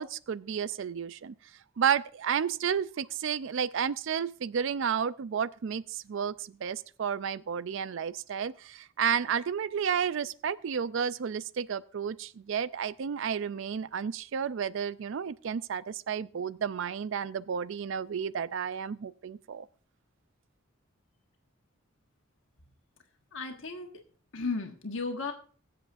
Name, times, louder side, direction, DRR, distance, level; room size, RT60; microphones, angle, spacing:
voice 1, 0.0-1.3 1.8-19.7, right 7 dB, 60° right, 0.4 m, -32 dB
voice 2, 23.3-23.9 24.3-25.3, left 4 dB, 65° left, 1.5 m, -34 dB
21.0 x 7.6 x 2.6 m
head